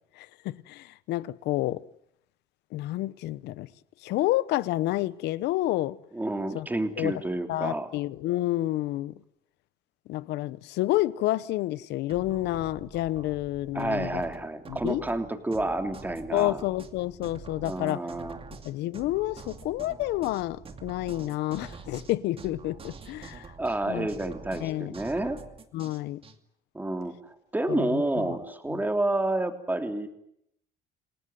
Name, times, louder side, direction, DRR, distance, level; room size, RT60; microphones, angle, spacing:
voice 1, 0.2-1.8 2.7-3.7 4.0-6.0 6.5-6.7 7.0-7.2 7.5-9.1 10.1-14.2 14.7-15.0 16.3-18.1 18.6-23.5 23.9-24.1 24.6-24.9 25.7-26.2 27.7-28.0 28.3-28.4 28.7-28.8, left 16 dB, 85° left, 1.0 m, -29 dB
voice 2, 6.1-7.9 13.7-16.6 17.6-18.4 23.6-25.4 26.7-30.1, right 2 dB, 10° right, 3.2 m, -29 dB
sound 1, 12.1-26.4, right 5 dB, 35° right, 2.6 m, -46 dB
28.0 x 19.0 x 9.3 m
cardioid pair, 110°, 17 cm